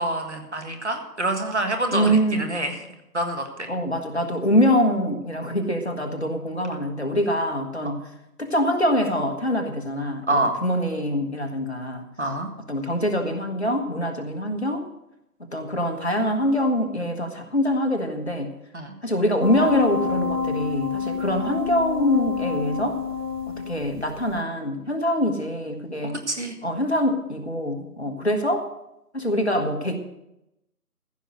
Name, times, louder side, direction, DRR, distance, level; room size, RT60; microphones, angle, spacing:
voice 1, 0.0-2.8 3.1-3.7 7.9-8.0 10.3-10.5 12.2-12.5 18.7-18.9 26.3-26.5, right 2 dB, 45° right, 4 dB, 1.7 m, -26 dB
voice 2, 1.9-2.6 3.7-8.0 8.4-12.1 12.7-14.8 15.5-18.5 19.0-23.0 23.5-26.2 26.6-28.7 29.1-30.0, equal, 45° left, 4 dB, 1.4 m, -24 dB
sound 1, 19.4-24.0 24.4-24.5, left 5 dB, 85° left, 1.5 m, -28 dB
15.0 x 6.3 x 7.8 m, 0.88 s
figure-of-eight pair, 170°, 48 cm